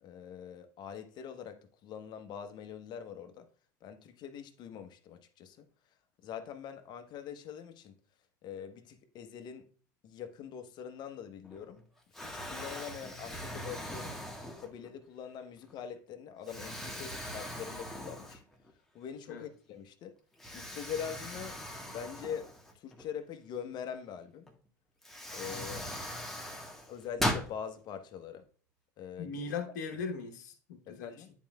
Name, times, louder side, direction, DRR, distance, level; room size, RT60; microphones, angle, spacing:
voice 1, 0.0-3.5 3.8-5.7 6.2-8.0 8.4-9.7 10.0-11.8 12.1-14.2 14.6-18.4 18.9-20.1 20.5-21.6 21.9-22.5 22.7-24.5 25.3-26.0 26.9-28.4 29.0-29.5 30.9-31.3, left 8 dB, 50° left, 0.9 m, -43 dB
Explosion, 11.4-11.8 12.1-15.0 15.6-15.7 16.5-18.7 19.1-19.2 20.4-23.0 24.5-24.6 25.0-27.5, equal, 5° left, 1.4 m, -39 dB
voice 2, 29.2-31.1, left 5 dB, 75° left, 1.0 m, -39 dB
10.0 x 4.6 x 2.3 m
hypercardioid pair, 80°, 9 cm